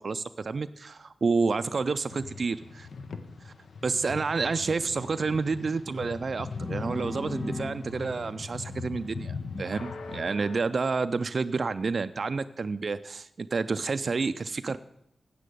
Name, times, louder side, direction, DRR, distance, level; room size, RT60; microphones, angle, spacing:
voice 1, 0.0-2.9 3.4-3.5 3.8-14.8, right 4 dB, 55° right, 12 dB, 0.3 m, -29 dB
sound 1, 1.6-10.6, left 4 dB, 75° left, 0.8 m, -40 dB
sound 2, 6.3-10.1, left 1 dB, 35° left, 1.2 m, -41 dB
9.9 x 7.6 x 6.7 m, 0.79 s
wide cardioid pair, 95°, 0 cm